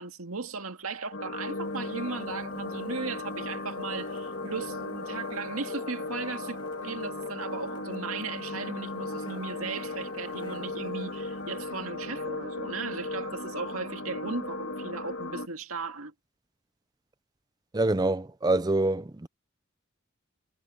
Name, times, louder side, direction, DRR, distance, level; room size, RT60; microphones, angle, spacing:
voice 1, 0.0-6.6 6.8-16.1, right 4 dB, 85° right, 2.0 m, -37 dB
sound 1, 1.1-15.5, left 2 dB, 65° left, 1.9 m, -36 dB
sound 2, 1.3-12.8, left 1 dB, 25° left, 2.4 m, -49 dB
voice 2, 17.7-19.3, right 2 dB, 20° right, 0.5 m, -25 dB
head